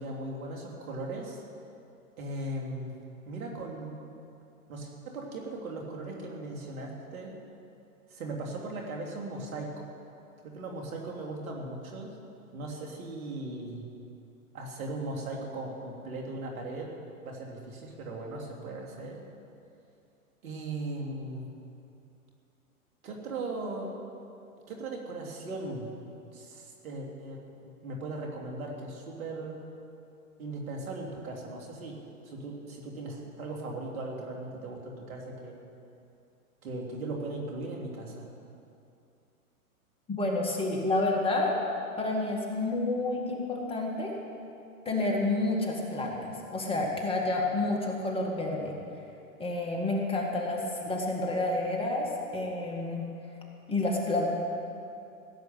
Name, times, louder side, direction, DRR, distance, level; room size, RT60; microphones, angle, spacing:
voice 1, 0.0-1.4 2.2-2.9 3.3-3.9 4.7-7.3 8.1-9.8 10.4-12.2 12.5-13.8 14.5-17.0 17.2-19.2 20.4-21.5 23.0-24.0 24.7-25.9 26.3-29.6 30.4-32.0 32.3-35.6 36.6-38.3, right 2 dB, 70° right, 0 dB, 3.5 m, -38 dB
voice 2, 40.1-41.6 42.0-44.2 44.9-48.8 49.4-53.1 53.7-54.3, left 2 dB, 10° left, -1 dB, 2.0 m, -29 dB
16.5 x 7.8 x 9.4 m, 2.6 s
hypercardioid pair, 125°, 44 cm